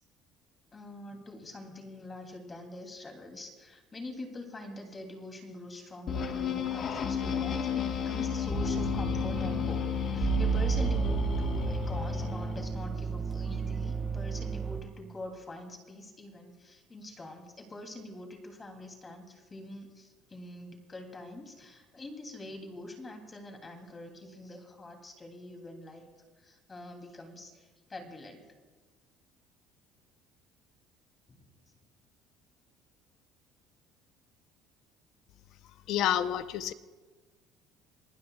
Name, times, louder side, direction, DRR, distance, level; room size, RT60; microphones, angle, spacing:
voice 1, 0.7-9.8 10.1-26.1 26.4-28.5 31.3-31.5, left 1 dB, 20° left, 3 dB, 2.9 m, -44 dB
sound 1, 6.1-12.6, left 8 dB, 45° left, 1.4 m, -32 dB
sound 2, 8.5-14.8, right 7 dB, 15° right, 0.9 m, -32 dB
voice 2, 35.9-36.7, left 11 dB, 65° left, 12 dB, 0.8 m, -28 dB
27.5 x 19.5 x 2.4 m, 1.4 s
cardioid pair, 140°, 0 cm